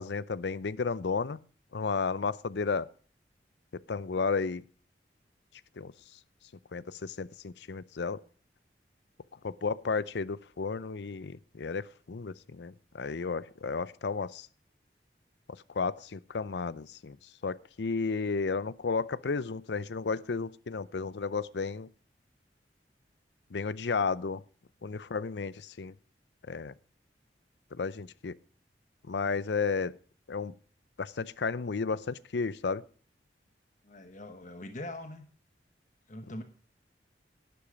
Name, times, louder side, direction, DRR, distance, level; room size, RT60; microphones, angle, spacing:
voice 1, 0.0-1.4 1.7-2.9 3.9-4.6 5.8-5.9 6.7-8.2 9.4-14.5 15.7-17.2 17.4-21.9 23.5-24.4 24.8-25.9 26.5-26.7 27.8-28.3 29.1-29.9 30.3-30.5 31.0-32.8, left 4 dB, 75° left, 0.6 m, -33 dB
voice 2, 33.8-35.3 36.1-36.4, left 1 dB, 45° left, 1.2 m, -42 dB
11.5 x 10.5 x 5.1 m
head